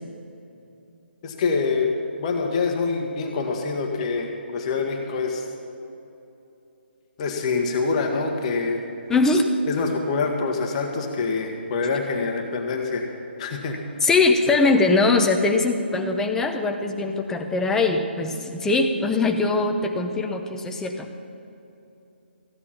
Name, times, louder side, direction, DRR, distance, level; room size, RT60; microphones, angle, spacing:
voice 1, 1.2-1.9 2.2-5.4 7.2-8.8 9.7-13.0 13.4-13.8 14.5-14.8, left 4 dB, 35° left, 2 dB, 1.4 m, -25 dB
voice 2, 9.1-9.5 14.0-21.1, left 3 dB, 5° left, 4 dB, 0.8 m, -21 dB
15.0 x 9.8 x 5.9 m, 2.9 s
figure-of-eight pair, 145°, 6 cm